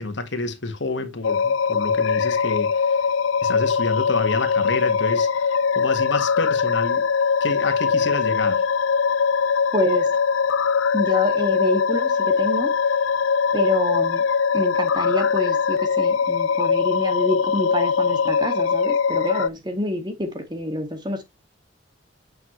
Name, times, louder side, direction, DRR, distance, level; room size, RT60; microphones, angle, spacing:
voice 1, 0.0-3.0 3.4-7.1 7.4-8.7, left 3 dB, 70° left, 1.8 m, -29 dB
sound 1, 1.2-19.5, left 6 dB, 85° left, 0.5 m, -21 dB
voice 2, 9.7-10.2 10.9-12.7 13.5-14.2 14.5-21.2, left 1 dB, 20° right, 2.2 m, -27 dB
9.0 x 6.4 x 3.2 m
head